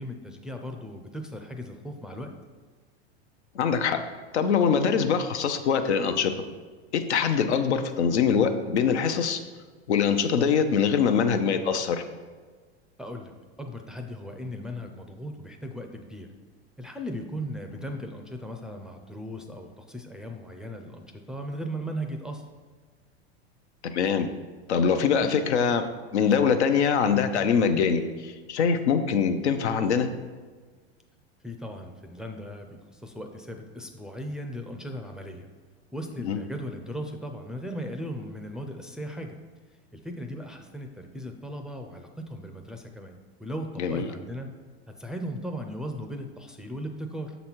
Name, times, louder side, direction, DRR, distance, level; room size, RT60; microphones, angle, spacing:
voice 1, 0.0-2.3 13.0-13.3 13.6-16.3 16.8-22.4 31.4-35.5 35.9-39.4 39.9-44.5 45.0-47.4, equal, ahead, 3 dB, 0.4 m, -37 dB
voice 2, 3.5-4.0 4.3-6.3 6.9-9.4 9.9-12.0 23.8-24.3 24.7-25.9 26.1-30.1 36.2-36.4 43.8-44.0, left 6 dB, 90° left, 8 dB, 0.7 m, -23 dB
6.5 x 4.1 x 4.4 m, 1.4 s
hypercardioid pair, 110°, 33 cm